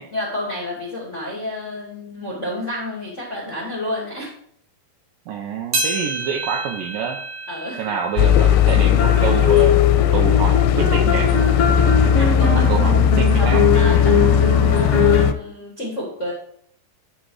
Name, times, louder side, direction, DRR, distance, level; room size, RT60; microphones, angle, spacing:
voice 1, 0.1-4.3 7.5-7.9 12.1-13.0 13.4-16.3, left 1 dB, 25° left, -3 dB, 1.6 m, -30 dB
voice 2, 5.3-7.2 7.8-11.3 12.5-13.7, right 7 dB, 80° right, 2 dB, 2.2 m, -27 dB
sound 1, 5.7-10.4 10.9-11.0 11.8-11.9 12.8-12.9, right 2 dB, 55° right, 2.0 m, -30 dB
sound 2, 8.2-15.3, left 9 dB, 85° left, 2.5 m, -17 dB
sound 3, 9.0-15.2, left 5 dB, 50° left, 0.8 m, -21 dB
10.0 x 3.9 x 6.2 m, 0.64 s
omnidirectional pair, 4.5 m